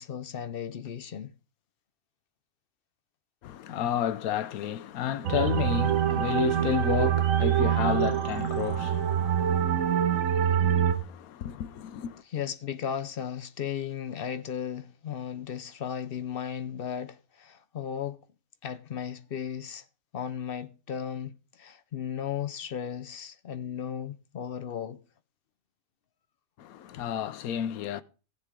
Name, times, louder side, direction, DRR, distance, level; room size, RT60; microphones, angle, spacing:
voice 1, 0.0-1.3 12.3-18.2 18.6-19.8 20.1-25.0, left 8 dB, 55° left, 0.7 m, -35 dB
voice 2, 3.4-12.2 26.6-28.0, left 9 dB, 85° left, 1.2 m, -32 dB
sound 1, 5.2-11.0, right 10 dB, 70° right, 1.2 m, -25 dB
17.0 x 7.3 x 3.7 m
omnidirectional pair, 1.5 m